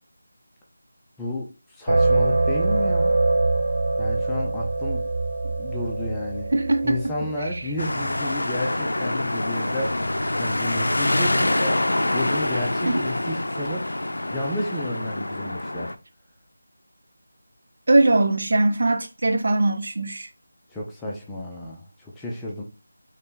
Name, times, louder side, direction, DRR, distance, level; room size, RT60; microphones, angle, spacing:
voice 1, 1.2-3.2 4.0-5.0 5.4-6.5 6.8-10.0 10.4-13.9 14.3-15.9 20.7-22.6, left 1 dB, 5° left, 0.5 m, -31 dB
sound 1, 1.9-8.4, right 2 dB, 80° right, 1.2 m, -24 dB
voice 2, 6.5-7.0 7.5-7.7 12.8-13.0 17.9-20.3, right 2 dB, 50° right, 0.5 m, -21 dB
sound 2, 7.8-15.9, left 1 dB, 85° left, 0.5 m, -25 dB
3.2 x 2.8 x 3.7 m
figure-of-eight pair, 175°, 0 cm